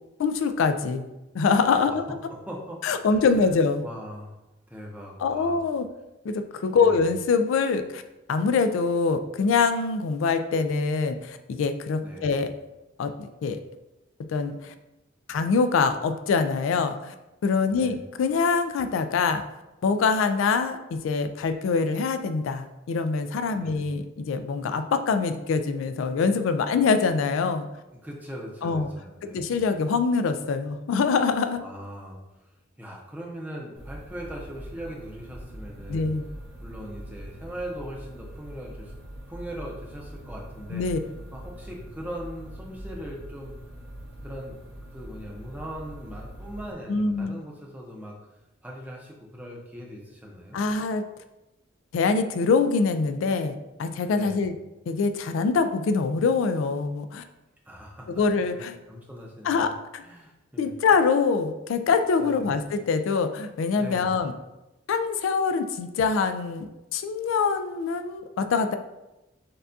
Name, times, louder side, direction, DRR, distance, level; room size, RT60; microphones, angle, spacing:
voice 1, 0.2-1.1 1.3-2.0 2.8-3.9 5.2-5.9 6.2-8.0 8.3-12.5 13.0-13.1 13.4-13.6 14.3-14.7 15.3-17.1 17.4-19.4 19.8-27.7 28.6-28.9 29.3-31.6 35.9-36.3 40.7-41.0 46.9-47.4 50.5-51.0 51.9-54.5 54.9-57.2 58.2-58.8 59.4-60.0 60.6-64.3 64.9-68.8, left 4 dB, 75° left, 9 dB, 0.3 m, -24 dB
voice 2, 2.3-3.5 3.8-4.4 4.7-5.6 6.7-7.0 12.0-12.3 17.7-18.0 23.6-23.8 28.0-29.5 31.6-32.2 32.4-36.1 36.6-38.9 39.3-40.9 41.3-43.5 44.2-44.6 44.9-48.1 48.6-50.6 54.1-54.4 57.7-58.2 58.5-60.7 62.2-62.5 63.7-64.1, equal, 10° right, -1 dB, 0.6 m, -40 dB
sound 1, 33.8-46.7, equal, 65° right, 0.9 m, -42 dB
6.6 x 2.3 x 2.6 m, 0.97 s
head